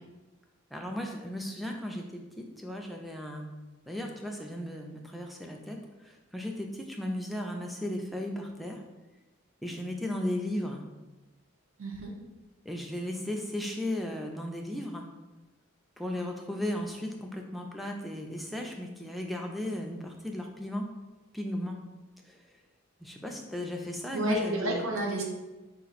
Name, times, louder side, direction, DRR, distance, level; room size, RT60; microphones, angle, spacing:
voice 1, 0.7-3.5 3.9-8.8 9.6-10.8 12.7-15.1 16.0-20.9 21.3-21.8 22.2-22.5 23.0-24.9, left 1 dB, ahead, 1 dB, 0.3 m, -35 dB
voice 2, 11.8-12.1 24.1-25.2, right 1 dB, 70° right, 0 dB, 0.7 m, -30 dB
4.1 x 2.4 x 4.0 m, 1.1 s
head